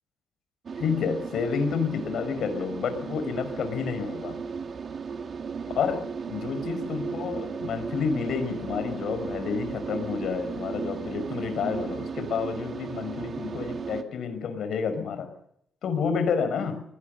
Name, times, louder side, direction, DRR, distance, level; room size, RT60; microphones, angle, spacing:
sound 1, 0.7-14.0, right 5 dB, 45° right, 2.2 m, -35 dB
voice 1, 0.8-4.4 5.8-15.3 15.8-16.8, left 6 dB, 65° left, 10 dB, 5.5 m, -29 dB
22.5 x 19.0 x 6.8 m, 0.72 s
cardioid pair, 90°, 0 cm